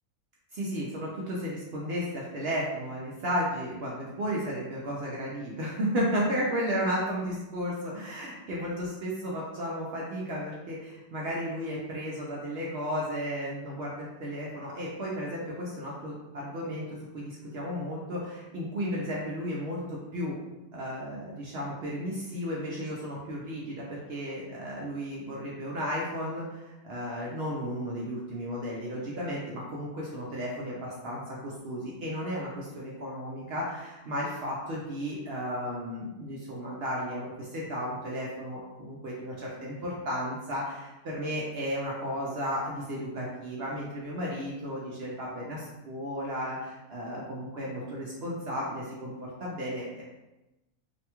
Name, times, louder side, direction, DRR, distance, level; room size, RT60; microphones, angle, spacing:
voice 1, 0.5-16.9 17.1-20.3 20.7-23.8 24.1-49.1 49.4-50.0, equal, 70° right, -4 dB, 0.6 m, -34 dB
2.7 x 2.2 x 2.8 m, 1.0 s
omnidirectional pair, 1.6 m